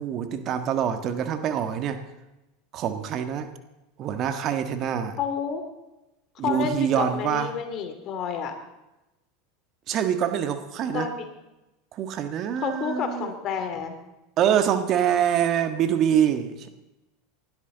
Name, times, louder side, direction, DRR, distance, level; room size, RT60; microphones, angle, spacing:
voice 1, 0.0-2.0 2.7-3.5 4.0-5.2 6.4-7.5 9.9-11.1 11.9-13.3 14.4-16.7, right 9 dB, 45° right, 8 dB, 1.5 m, -25 dB
voice 2, 5.2-5.6 6.4-8.5 10.9-11.3 12.6-13.9, left 6 dB, 45° left, 6 dB, 2.9 m, -29 dB
19.5 x 12.5 x 4.0 m, 0.97 s
hypercardioid pair, 90°, 0 cm